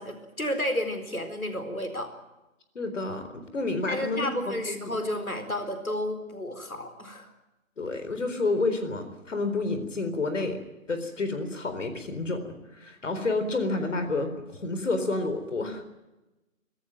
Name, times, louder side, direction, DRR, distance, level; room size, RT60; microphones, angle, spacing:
voice 1, 0.0-2.1 3.9-7.3, left 1 dB, 85° left, 7 dB, 4.5 m, -31 dB
voice 2, 2.7-4.9 7.8-10.6 10.9-15.8, left 3 dB, 60° left, 8 dB, 4.2 m, -30 dB
25.0 x 17.5 x 9.1 m, 1.0 s
figure-of-eight pair, 140°, 41 cm